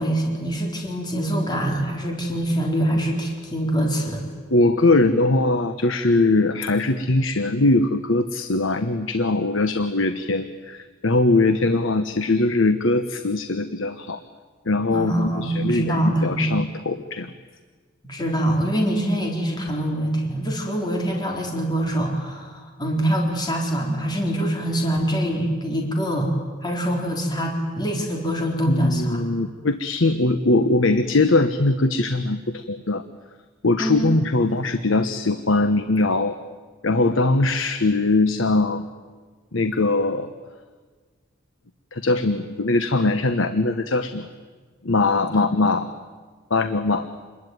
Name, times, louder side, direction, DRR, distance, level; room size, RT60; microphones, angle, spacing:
voice 1, 0.0-4.2 14.9-16.6 18.0-26.3 26.6-29.2 33.8-34.2 45.3-45.5, right 1 dB, 20° left, 1 dB, 3.8 m, -24 dB
voice 2, 4.5-14.2 14.7-17.3 28.7-33.0 33.6-36.4 36.8-38.8 39.5-40.3 41.9-44.3 44.8-45.8 46.5-47.1, left 2 dB, 75° left, 10 dB, 1.2 m, -21 dB
27.5 x 21.5 x 9.4 m, 1.5 s
head